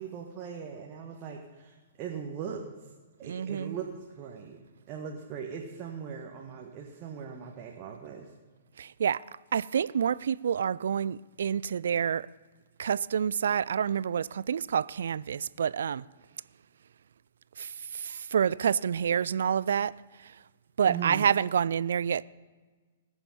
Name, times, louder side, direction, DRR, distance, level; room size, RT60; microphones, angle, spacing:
voice 1, 0.0-2.6 3.2-3.9 4.2-8.3 20.9-21.3, right 7 dB, 35° right, 1.4 m, -39 dB
voice 2, 3.2-3.8 8.8-9.2 9.5-12.3 12.8-16.0 17.6-20.4 20.8-22.2, right 8 dB, 60° right, 0.3 m, -28 dB
20.0 x 7.1 x 5.5 m
figure-of-eight pair, 115°, 0 cm